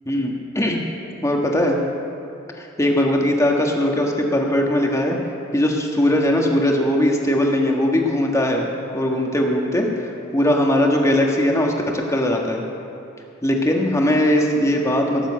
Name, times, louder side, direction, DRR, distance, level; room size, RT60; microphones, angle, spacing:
voice 1, 0.1-0.8 1.2-1.8 2.6-5.2 5.5-8.7 8.9-12.6 13.4-15.3, left 1 dB, 15° left, 0 dB, 1.6 m, -20 dB
18.0 x 7.3 x 7.6 m, 2.8 s
head